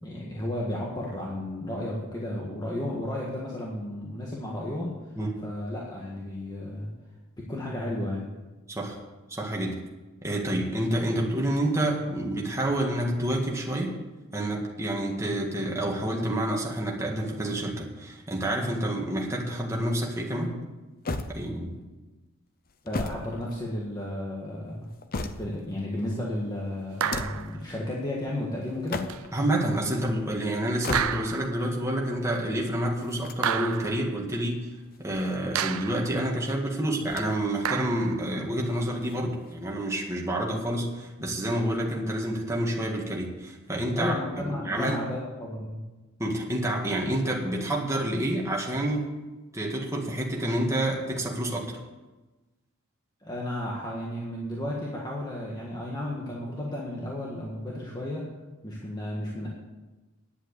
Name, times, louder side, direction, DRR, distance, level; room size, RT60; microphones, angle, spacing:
voice 1, 0.0-5.1 5.4-6.9 7.4-8.3 22.8-24.9 25.4-29.1 43.9-45.8 53.2-58.2 58.6-59.5, left 1 dB, 20° left, -4 dB, 1.7 m, -33 dB
voice 2, 9.3-9.8 10.2-13.9 14.3-20.6 21.3-21.7 29.3-34.6 35.0-44.1 44.5-45.0 46.2-49.1 49.5-51.8, right 1 dB, 15° right, -2 dB, 1.9 m, -28 dB
sound 1, 21.0-21.9 22.6-24.0 24.7-25.7 26.9-27.6 28.7-29.4 30.6-31.5 33.0-34.0 34.9-35.8 37.0-37.6 37.9-38.0 39.0-39.8, left 2 dB, 45° left, 0.8 m, -37 dB
sound 2, 27.0-27.6 29.1-29.3 30.9-31.6 33.4-34.1 35.6-36.1 37.6-38.2, right 8 dB, 80° right, 0.6 m, -30 dB
10.0 x 8.0 x 8.3 m, 1.2 s
head